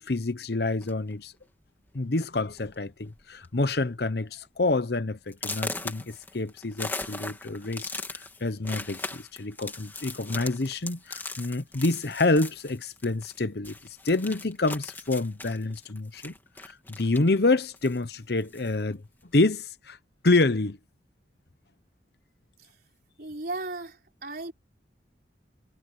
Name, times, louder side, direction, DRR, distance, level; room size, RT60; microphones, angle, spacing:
voice 1, 0.0-1.3 1.9-13.8 14.0-16.3 16.6-19.0 19.3-20.0 20.2-20.8, left 2 dB, 60° left, 0.9 m, -27 dB
sound 1, 0.8-1.1 1.9-2.0 2.4-2.7 3.0-3.5 3.9-4.0 4.5-4.6 5.3-13.4 13.6-17.4 17.7-18.8, left 2 dB, 10° left, 2.6 m, -39 dB
voice 2, 23.2-24.5, right 2 dB, 55° right, 4.8 m, -36 dB
head